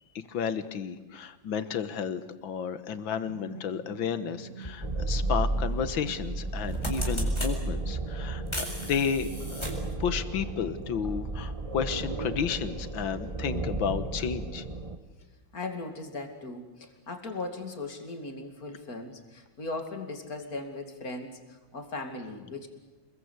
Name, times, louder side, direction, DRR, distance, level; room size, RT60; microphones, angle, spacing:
voice 1, 0.3-9.7 10.0-14.7, left 7 dB, 80° left, 12 dB, 2.0 m, -32 dB
sound 1, 3.3-10.6, right 7 dB, 35° right, 1.9 m, -47 dB
sound 2, 4.6-4.8 6.1-6.3 6.6-7.5 8.5-9.9, left 1 dB, 15° left, 4.2 m, -37 dB
sound 3, 4.8-15.0, right 2 dB, 20° right, 1.3 m, -33 dB
voice 2, 15.5-22.7, left 2 dB, 45° left, 5 dB, 3.0 m, -38 dB
27.5 x 21.0 x 8.3 m, 1.2 s
omnidirectional pair, 2.1 m